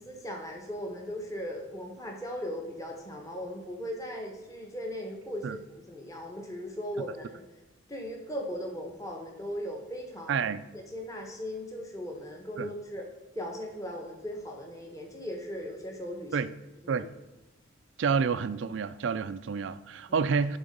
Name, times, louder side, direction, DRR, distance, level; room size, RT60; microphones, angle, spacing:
voice 1, 0.1-5.6 5.9-7.4 7.9-10.5 10.7-13.0 13.3-16.5 16.8-17.0, equal, 15° left, 1.1 m, -38 dB
voice 2, 10.3-10.6 12.6-12.7 16.3-16.5 16.9-17.1 18.0-20.6, right 5 dB, 65° right, 0.4 m, -29 dB
11.0 x 3.8 x 5.2 m
head